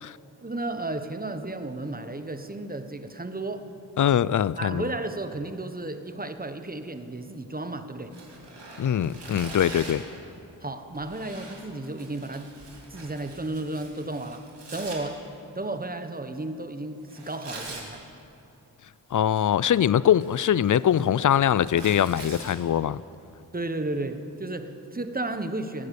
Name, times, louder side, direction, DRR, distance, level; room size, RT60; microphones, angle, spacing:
voice 1, 0.4-3.7 4.6-8.2 10.6-12.5 12.9-15.3 15.5-18.0 23.5-25.9, right 2 dB, 20° right, 9 dB, 1.0 m, -33 dB
voice 2, 4.0-4.9 8.8-10.0 19.1-23.0, left 10 dB, 50° left, 19 dB, 0.4 m, -22 dB
Tearing, 8.1-10.1 10.9-15.0 17.1-17.9 19.1-19.7 20.1-22.5, right 3 dB, 80° right, 2.6 m, -43 dB
18.0 x 9.5 x 6.9 m, 2.9 s
cardioid pair, 50°, 41 cm